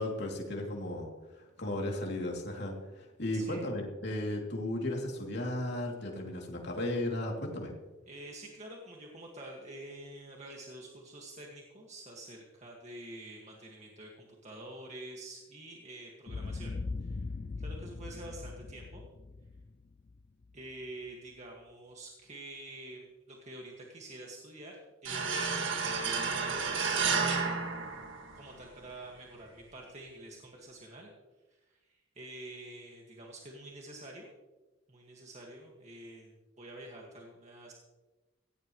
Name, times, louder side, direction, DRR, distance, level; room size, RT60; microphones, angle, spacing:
voice 1, 0.0-7.7, left 1 dB, 55° left, 0 dB, 3.0 m, -35 dB
voice 2, 3.3-3.6 8.1-16.7 17.0-17.3 17.6-19.0 20.5-27.1 28.3-31.1 31.5-34.3 34.9-37.7, right 1 dB, 35° right, -1 dB, 1.9 m, -47 dB
Boom, 16.3-20.5, left 3 dB, 35° left, 0.4 m, -40 dB
sound 1, 25.0-28.6, right 5 dB, 65° right, 1.9 m, -31 dB
17.5 x 16.0 x 3.2 m, 1.2 s
head